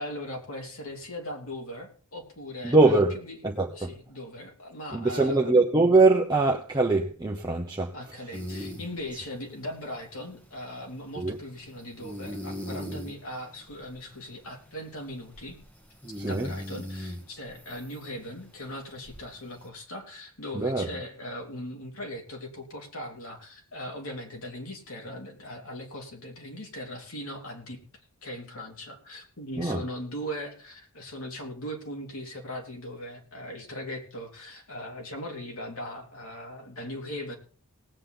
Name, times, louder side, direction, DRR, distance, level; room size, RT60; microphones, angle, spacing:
voice 1, 0.0-3.4 3.7-5.5 7.9-15.6 16.2-27.8 28.2-37.4, equal, 70° left, 3.4 m, -39 dB
voice 2, 2.6-3.1 3.4-3.9 4.9-7.9 11.2-11.4 16.2-16.5 20.5-20.9 29.6-29.8, right 3 dB, 20° right, 1.0 m, -22 dB
sound 1, 8.3-19.7, equal, 5° left, 1.4 m, -42 dB
19.0 x 8.7 x 3.9 m
head